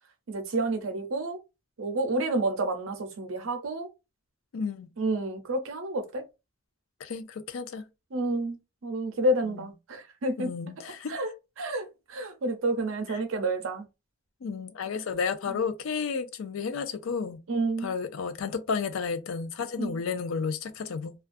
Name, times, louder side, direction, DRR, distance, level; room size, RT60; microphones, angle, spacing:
voice 1, 0.3-1.4 1.8-3.9 5.0-6.2 8.1-10.5 11.1-11.3 11.6-13.9 17.5-17.9 19.8-19.9, right 2 dB, 85° right, 0.6 m, -29 dB
voice 2, 4.5-4.9 7.0-7.9 9.4-9.7 10.4-11.2 13.1-13.2 14.4-17.4 17.8-21.1, left 5 dB, 90° left, 0.4 m, -32 dB
2.3 x 2.2 x 2.5 m
head